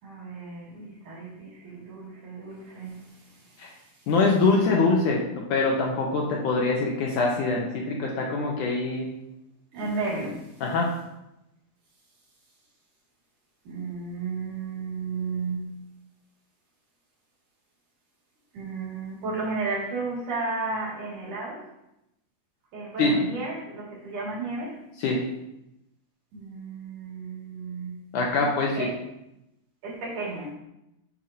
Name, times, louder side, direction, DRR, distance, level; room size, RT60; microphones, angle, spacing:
voice 1, 0.0-3.6 9.7-10.6 13.6-15.8 18.5-21.7 22.7-24.8 26.3-28.1 28.4-28.5 28.7-28.9 29.8-30.5, right 3 dB, 60° right, -5 dB, 3.9 m, -33 dB
voice 2, 4.1-9.1 10.6-10.9 23.0-23.1 25.0-25.2 28.1-28.9, left 3 dB, 70° left, -1 dB, 2.2 m, -24 dB
9.2 x 7.5 x 2.9 m, 0.86 s
omnidirectional pair, 4.3 m